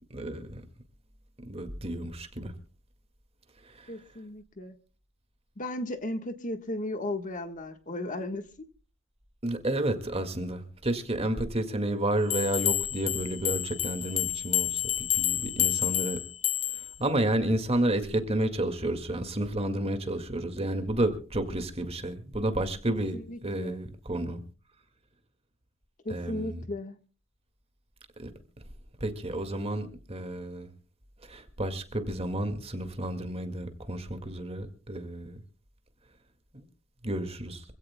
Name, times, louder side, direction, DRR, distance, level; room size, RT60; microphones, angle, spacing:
voice 1, 0.1-0.6 1.4-2.5 3.8-3.9 9.4-16.2 17.0-24.4 26.1-26.6 28.2-28.3 29.0-30.7 31.3-35.4 36.5-36.6 37.0-37.6, right 1 dB, 30° right, 2.0 m, -31 dB
voice 2, 3.9-4.7 5.6-8.5 22.9-23.8 26.0-27.0, left 1 dB, 40° left, 1.4 m, -35 dB
sound 1, 12.3-16.9, left 13 dB, 75° left, 1.2 m, -29 dB
26.0 x 16.0 x 2.2 m
head